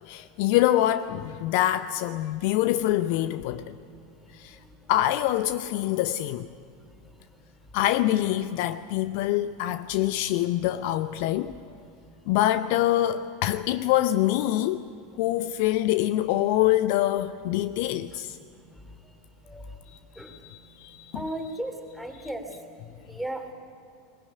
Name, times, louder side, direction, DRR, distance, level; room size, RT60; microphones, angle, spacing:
voice 1, 0.0-3.8 4.3-4.6 4.9-6.5 7.7-11.5 12.3-14.9 15.2-18.4 20.1-21.2, left 13 dB, 50° left, 0.6 m, -25 dB
voice 2, 21.1-22.5 23.1-23.5, right 1 dB, ahead, 3.2 m, -35 dB
20.5 x 20.0 x 9.5 m
figure-of-eight pair, 80°, 0 cm